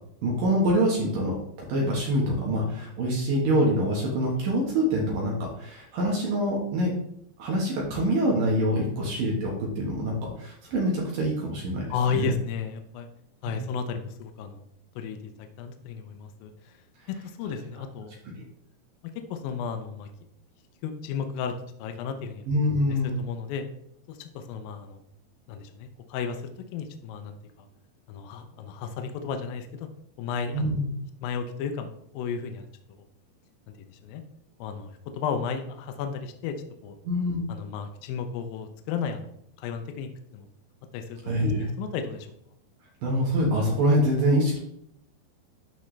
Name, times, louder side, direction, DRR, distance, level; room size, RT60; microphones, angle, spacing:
voice 1, 0.2-1.4 1.7-6.9 7.4-12.3 13.5-13.7 22.5-23.2 30.5-30.9 37.0-37.4 41.3-41.7 43.0-44.6, equal, 65° right, -3 dB, 2.8 m, -25 dB
voice 2, 11.9-13.1 13.4-14.6 15.0-16.7 17.1-18.1 19.3-20.1 20.8-21.5 21.8-22.4 23.2-23.6 24.1-25.0 25.5-27.7 28.1-29.9 30.2-30.8 31.2-32.7 33.9-34.2 34.6-36.6 36.8-37.0 37.5-39.3 39.6-40.5 40.9-41.5 41.8-42.3, left 6 dB, 75° left, 6 dB, 2.2 m, -33 dB
12.0 x 4.3 x 3.2 m, 0.73 s
omnidirectional pair, 4.6 m